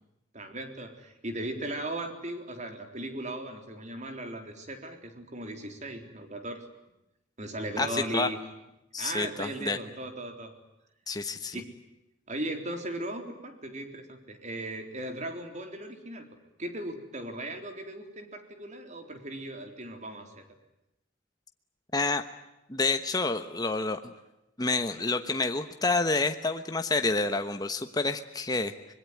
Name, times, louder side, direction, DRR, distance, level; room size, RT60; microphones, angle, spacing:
voice 1, 0.3-6.6 7.4-8.4 9.0-10.5 11.5-11.7 12.3-16.3 16.6-20.4, right 1 dB, 40° right, 6 dB, 3.9 m, -37 dB
voice 2, 7.8-8.3 8.9-9.8 11.1-11.6 21.9-22.2 22.7-24.1 24.6-28.9, left 3 dB, 20° left, 7 dB, 1.1 m, -29 dB
25.0 x 22.0 x 9.4 m, 0.90 s
head